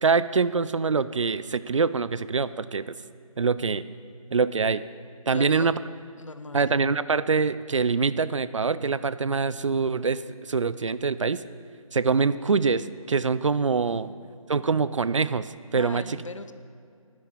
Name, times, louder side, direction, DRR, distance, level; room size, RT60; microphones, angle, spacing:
voice 1, 0.0-2.9 3.4-3.8 4.3-4.8 5.3-5.7 6.5-10.2 10.5-11.4 11.9-14.1 14.5-16.2, right 5 dB, 60° right, 15 dB, 0.5 m, -24 dB
voice 2, 5.3-5.7 6.2-6.7 13.9-14.4 15.7-16.5, left 3 dB, 60° left, 12 dB, 0.7 m, -39 dB
11.5 x 9.9 x 6.2 m, 2.4 s
figure-of-eight pair, 155°, 18 cm